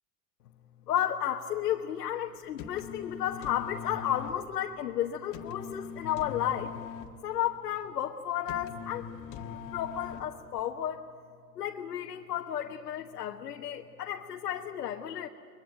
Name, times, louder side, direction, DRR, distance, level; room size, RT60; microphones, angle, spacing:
voice 1, 0.9-6.7 7.2-9.1 9.5-11.0 11.5-15.3, left 10 dB, 80° left, 3 dB, 1.4 m, -33 dB
sound 1, 2.4-10.6, left 7 dB, 40° left, 1.8 m, -42 dB
24.0 x 22.0 x 9.3 m, 2.6 s
hypercardioid pair, 100°, 47 cm